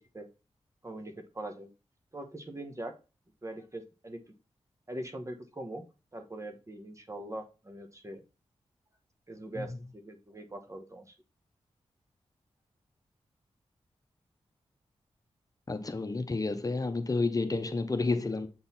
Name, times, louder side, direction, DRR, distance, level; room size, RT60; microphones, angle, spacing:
voice 1, 0.8-1.7 2.1-2.9 3.4-4.2 4.9-5.8 6.1-8.2 9.3-11.2, right 1 dB, 25° right, 1.2 m, -42 dB
voice 2, 15.7-18.5, left 3 dB, 35° left, 0.9 m, -30 dB
7.8 x 3.9 x 4.3 m
cardioid pair, 65°, 11 cm